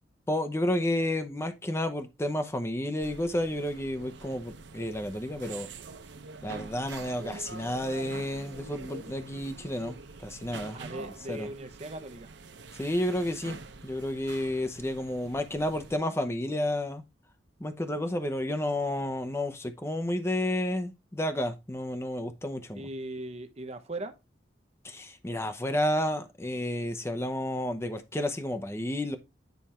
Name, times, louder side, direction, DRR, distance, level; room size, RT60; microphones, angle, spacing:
voice 1, 0.3-5.7 6.4-10.0 10.2-11.5 12.8-17.0 17.6-22.9 24.8-29.2, left 1 dB, 15° left, 0.8 m, -31 dB
sound 1, 3.0-16.0, right 4 dB, 70° right, 0.8 m, -45 dB
voice 2, 10.7-12.3 22.7-24.2, right 1 dB, 35° right, 0.9 m, -39 dB
9.4 x 3.4 x 4.3 m
head